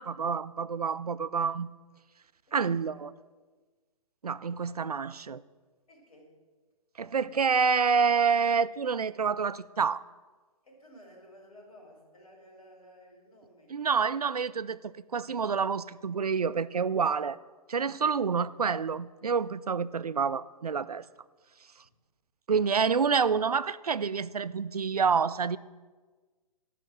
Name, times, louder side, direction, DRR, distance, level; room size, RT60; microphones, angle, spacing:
voice 1, 0.0-1.7 2.5-3.1 4.2-5.4 7.0-10.0 13.7-17.4 17.7-21.0 22.5-25.6, right 6 dB, 85° right, 16 dB, 0.5 m, -28 dB
voice 2, 2.5-3.0 5.9-6.3 10.6-13.7 21.8-21.9, equal, 75° left, 0 dB, 4.4 m, -54 dB
12.5 x 5.9 x 7.5 m, 1.4 s
figure-of-eight pair, 125°, 19 cm